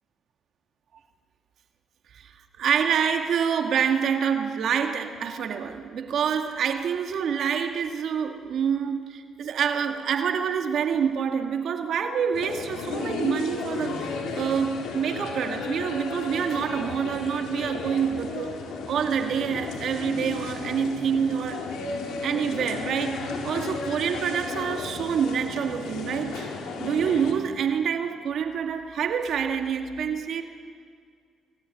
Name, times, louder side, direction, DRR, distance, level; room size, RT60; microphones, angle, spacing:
voice 1, 2.1-18.5 18.9-21.7 22.2-26.5 26.8-30.4, right 7 dB, 65° right, 5 dB, 1.9 m, -27 dB
sound 1, 12.3-27.3, left 4 dB, 85° left, 4.1 m, -34 dB
27.5 x 21.5 x 9.7 m, 2.1 s
cardioid pair, 90°, 0 cm